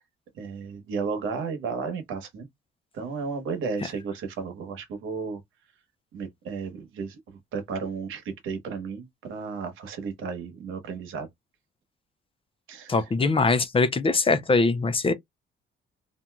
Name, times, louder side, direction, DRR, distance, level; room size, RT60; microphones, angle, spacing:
voice 1, 0.4-2.5 2.9-5.4 6.1-11.3 12.7-13.0, right 5 dB, 85° right, 1.0 m, -33 dB
voice 2, 12.9-15.1, left 3 dB, 25° left, 0.5 m, -22 dB
2.9 x 2.6 x 2.2 m
cardioid pair, 90°, 20 cm